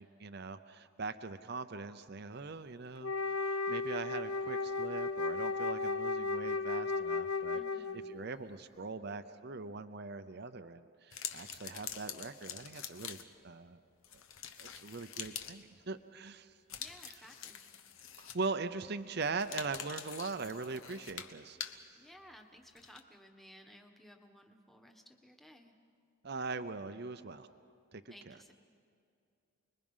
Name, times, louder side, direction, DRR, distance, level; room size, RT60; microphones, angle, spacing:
voice 1, 0.0-7.6 8.1-13.2 13.4-13.8 14.6-16.5 18.2-21.8 26.2-27.5 27.9-28.4, right 4 dB, 50° right, 10 dB, 0.7 m, -41 dB
Wind instrument woodwind instrument, 3.0-8.2, left 3 dB, 85° left, 0.7 m, -35 dB
voice 2, 7.5-8.2 16.8-17.6 21.9-25.7 28.1-28.5, equal, ahead, 4 dB, 1.4 m, -57 dB
sound 1, 11.1-13.4 14.0-15.6 16.7-18.6 19.3-21.8 22.8-23.0, left 8 dB, 70° left, 1.2 m, -45 dB
30.0 x 21.5 x 5.6 m, 2.5 s
head